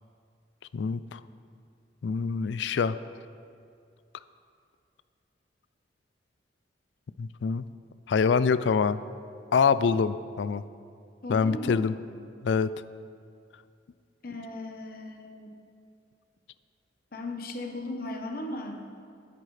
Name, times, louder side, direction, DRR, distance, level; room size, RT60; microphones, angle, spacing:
voice 1, 0.7-1.2 2.0-3.0 7.2-7.7 8.1-9.0 9.5-10.6 11.3-11.9 12.4-12.7, left 5 dB, 70° left, 15 dB, 0.4 m, -25 dB
voice 2, 11.2-11.9 14.2-15.5 17.1-18.8, left 2 dB, 50° left, 3 dB, 1.0 m, -36 dB
16.0 x 8.7 x 3.3 m, 2.3 s
head